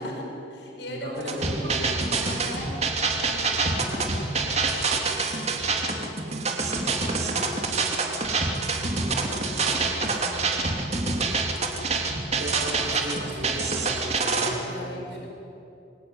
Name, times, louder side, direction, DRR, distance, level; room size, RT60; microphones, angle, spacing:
voice 1, 0.0-1.5 2.1-8.9 9.3-13.0 14.3-15.3, left 1 dB, 75° left, 1 dB, 5.5 m, -42 dB
voice 2, 0.9-2.2 12.3-15.3, right 1 dB, 75° right, -3 dB, 8.0 m, -35 dB
sound 1, 1.2-14.5, right 3 dB, 35° right, 2.8 m, -26 dB
27.0 x 22.0 x 9.9 m, 2.8 s
head